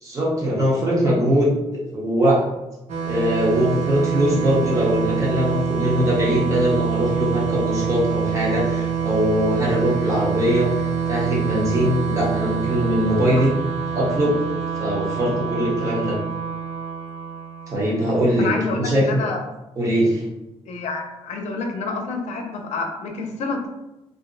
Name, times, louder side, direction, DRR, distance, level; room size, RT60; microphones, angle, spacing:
voice 1, 0.0-1.5 1.9-2.4 3.1-13.5 13.9-14.3 14.8-16.2 17.7-19.2 19.8-20.2, equal, 30° right, -5 dB, 0.9 m, -21 dB
sound 1, 2.9-18.3, right 7 dB, 90° right, 0.6 m, -26 dB
voice 2, 18.4-19.4 20.7-23.7, left 3 dB, 85° left, 3 dB, 0.5 m, -28 dB
2.5 x 2.1 x 3.7 m, 0.95 s
wide cardioid pair, 160°, 11 cm